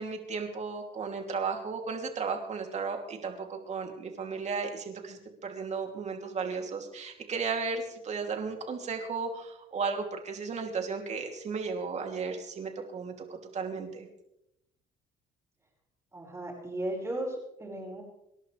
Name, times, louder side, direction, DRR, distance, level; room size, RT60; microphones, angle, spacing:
voice 1, 0.0-13.1 13.5-14.1, right 5 dB, 45° right, 3 dB, 2.9 m, -34 dB
voice 2, 16.1-18.0, right 1 dB, 15° right, -1 dB, 5.3 m, -36 dB
26.0 x 11.5 x 3.4 m, 0.82 s
cardioid pair, 110°, 17 cm